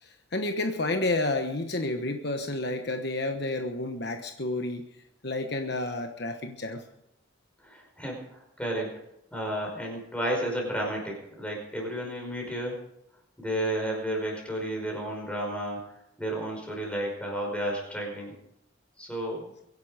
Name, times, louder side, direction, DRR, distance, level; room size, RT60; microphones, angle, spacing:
voice 1, 0.0-4.8 5.2-6.8, left 2 dB, 55° left, 5 dB, 1.2 m, -30 dB
voice 2, 7.6-8.9 9.3-12.8 13.4-15.9 16.2-18.4 19.0-19.5, right 1 dB, 5° left, 0 dB, 5.2 m, -32 dB
23.0 x 11.0 x 5.1 m, 0.81 s
head